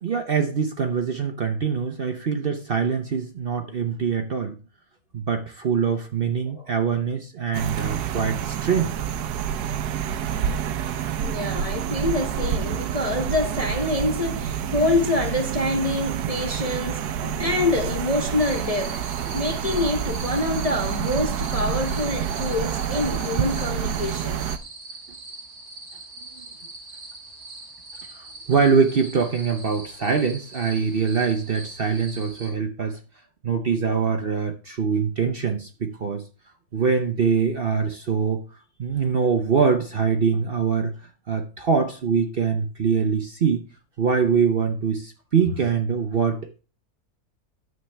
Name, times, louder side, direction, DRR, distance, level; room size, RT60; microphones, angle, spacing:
voice 1, 0.0-4.6 5.1-8.9 28.1-33.0 33.4-36.2 36.7-38.4 38.8-40.9 41.3-43.6 44.0-46.6, right 6 dB, 45° right, 0.8 m, -23 dB
voice 2, 6.4-6.8 11.2-19.0 19.3-24.5, left 2 dB, 35° left, 0.7 m, -26 dB
sound 1, 7.5-24.6, right 8 dB, 80° right, 1.2 m, -28 dB
sound 2, 18.4-32.5, right 2 dB, 65° right, 2.6 m, -42 dB
9.5 x 7.3 x 3.3 m
omnidirectional pair, 1.7 m